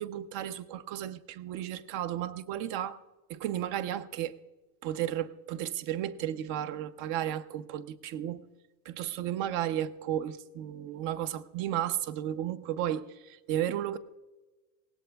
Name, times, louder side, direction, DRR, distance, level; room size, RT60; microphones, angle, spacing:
voice 1, 0.0-3.0 3.3-4.4 4.8-8.4 8.9-14.0, right 11 dB, 45° right, 13 dB, 0.7 m, -33 dB
19.5 x 17.0 x 2.3 m, 1.2 s
supercardioid pair, 135°, 44 cm